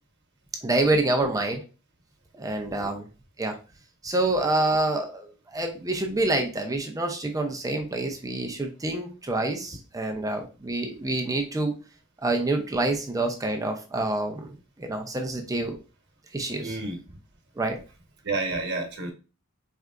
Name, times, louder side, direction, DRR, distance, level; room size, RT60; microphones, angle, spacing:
voice 1, 0.6-1.6 2.3-3.0 3.4-3.6 4.0-11.8 12.2-15.8 16.3-16.8 17.6-17.8, right 2 dB, 15° right, 3 dB, 0.6 m, -27 dB
voice 2, 16.6-17.2 18.2-19.1, right 3 dB, 55° right, 3 dB, 1.2 m, -30 dB
4.6 x 3.3 x 2.5 m, 0.32 s
head